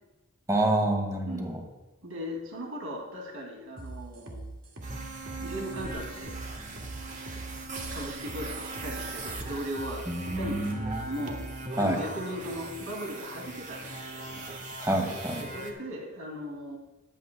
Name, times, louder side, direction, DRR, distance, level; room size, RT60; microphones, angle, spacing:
voice 1, 0.5-1.6 10.1-11.2 11.8-12.0 14.8-15.4, right 1 dB, 15° right, 1 dB, 2.1 m, -28 dB
voice 2, 1.3-1.6 2.0-4.4 4.8-6.3 7.9-11.4 11.8-14.5 15.4-16.8, equal, 80° right, 0 dB, 2.5 m, -38 dB
sound 1, 3.8-11.5, right 2 dB, 65° right, 2.1 m, -42 dB
sound 2, 4.8-15.7, right 3 dB, 35° right, 1.4 m, -40 dB
21.5 x 8.5 x 2.3 m, 1.1 s
head